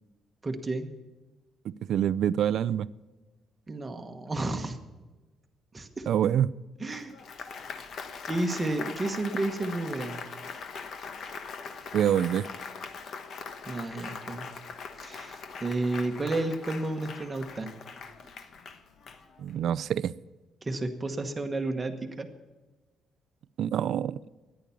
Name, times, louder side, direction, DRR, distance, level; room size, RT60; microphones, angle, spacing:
voice 1, 0.4-0.9 3.7-4.8 5.7-6.1 6.8-7.2 8.3-10.2 13.6-14.4 15.0-17.7 20.6-22.3, right 2 dB, 20° right, 6 dB, 1.2 m, -31 dB
voice 2, 1.9-2.9 6.1-6.5 11.9-12.5 19.4-20.1 23.6-24.2, right 10 dB, 60° right, 19 dB, 0.4 m, -26 dB
Applause, 6.9-19.6, left 5 dB, 50° left, 1.1 m, -41 dB
14.0 x 10.5 x 7.0 m, 1.2 s
cardioid pair, 170°, 0 cm